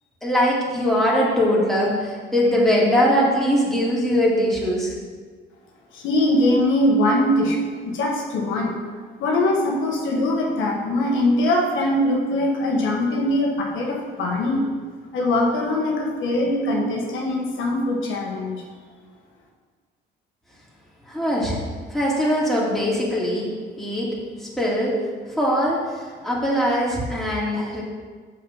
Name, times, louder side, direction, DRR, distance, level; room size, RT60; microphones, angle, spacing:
voice 1, 0.2-4.9 21.1-21.6 21.9-23.5 23.8-24.1 24.4-25.0 25.4-27.8, equal, ahead, -5 dB, 2.6 m, -21 dB
voice 2, 5.9-8.8 9.2-14.6 15.1-18.6, left 1 dB, 80° left, -1 dB, 1.5 m, -22 dB
6.9 x 6.5 x 5.4 m, 1.5 s
cardioid pair, 90°, 20 cm